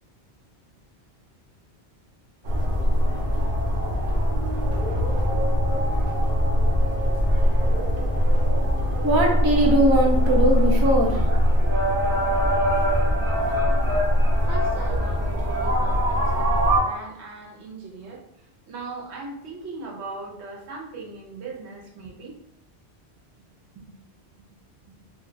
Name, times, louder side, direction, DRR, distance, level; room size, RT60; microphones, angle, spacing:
sound 1, 2.4-16.8, equal, 60° right, 0.8 m, -22 dB
voice 1, 9.0-11.3 23.8-23.9, right 1 dB, 30° right, 0 dB, 0.4 m, -20 dB
voice 2, 14.4-22.4, right 3 dB, 80° right, -2 dB, 1.1 m, -39 dB
2.5 x 2.2 x 3.8 m, 0.78 s
omnidirectional pair, 1.1 m